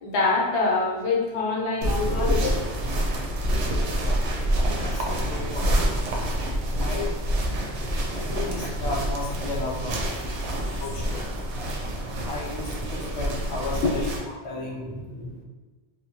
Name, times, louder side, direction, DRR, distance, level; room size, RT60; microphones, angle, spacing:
voice 1, 0.0-2.6 13.8-14.1, left 3 dB, 75° left, -2 dB, 0.9 m, -25 dB
sound 1, 1.8-14.2, equal, 85° right, 0.9 m, -27 dB
voice 2, 4.6-5.8 6.2-6.3 6.8-7.2 8.1-10.1 10.8-11.3 11.6-11.7 12.2-15.4, left 2 dB, 40° left, -3 dB, 0.4 m, -34 dB
2.9 x 2.1 x 2.6 m, 1.2 s
omnidirectional pair, 1.2 m